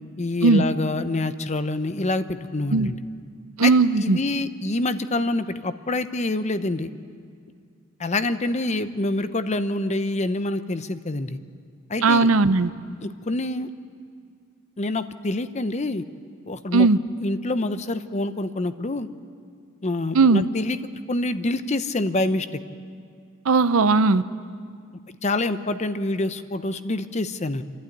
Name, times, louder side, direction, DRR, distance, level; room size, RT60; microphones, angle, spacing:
voice 1, 0.2-3.0 3.6-3.7 4.0-6.9 8.0-11.4 11.9-12.3 13.0-13.7 14.8-16.0 16.4-16.9 17.2-19.1 19.8-20.8 21.1-22.5 25.2-27.6, left 2 dB, 35° left, 11 dB, 0.7 m, -26 dB
voice 2, 3.6-4.2 12.0-12.7 16.7-17.0 20.1-20.4 23.5-24.2, right 3 dB, 75° right, 13 dB, 0.6 m, -17 dB
29.5 x 12.0 x 9.3 m, 2.2 s
head